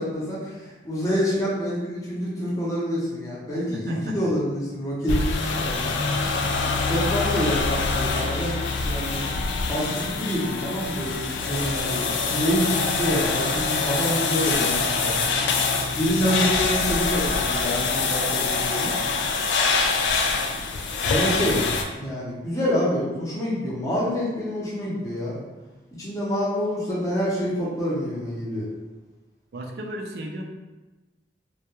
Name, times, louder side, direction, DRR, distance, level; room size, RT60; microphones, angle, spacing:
voice 1, 0.0-6.0 6.8-8.6 8.8-9.3 9.7-15.1 15.9-18.9 21.0-21.6 22.0-25.4 26.0-28.7, equal, 20° left, -7 dB, 0.7 m, -27 dB
voice 2, 3.7-4.2 29.5-30.4, right 1 dB, 65° right, 2 dB, 0.4 m, -34 dB
sound 1, 5.1-21.8, left 4 dB, 85° left, 0.3 m, -25 dB
2.2 x 2.2 x 2.9 m, 1.1 s
head